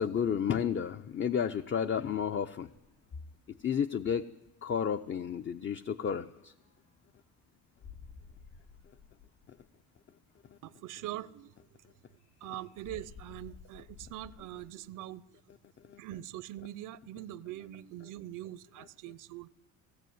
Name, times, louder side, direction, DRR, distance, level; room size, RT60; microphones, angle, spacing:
voice 1, 0.0-2.7 3.6-4.3 4.6-6.5 15.9-16.0, left 7 dB, 35° left, 0.7 m, -31 dB
sound 1, 2.3-14.7, left 6 dB, 85° left, 3.9 m, -57 dB
voice 2, 10.6-11.8 12.4-15.4 15.8-19.5, right 14 dB, 70° right, 0.7 m, -43 dB
18.5 x 17.5 x 9.3 m
cardioid pair, 110°, 32 cm